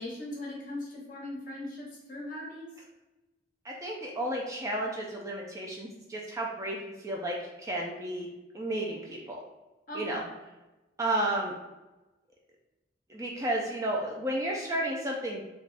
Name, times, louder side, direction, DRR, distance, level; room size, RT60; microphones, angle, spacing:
voice 1, 0.0-2.7 9.9-10.3, left 1 dB, 45° left, -3 dB, 0.9 m, -39 dB
voice 2, 3.6-8.3 8.5-9.4 9.9-10.2 11.0-11.5 13.1-15.4, right 1 dB, 15° right, -2 dB, 0.3 m, -32 dB
3.3 x 2.2 x 2.4 m, 1.1 s
head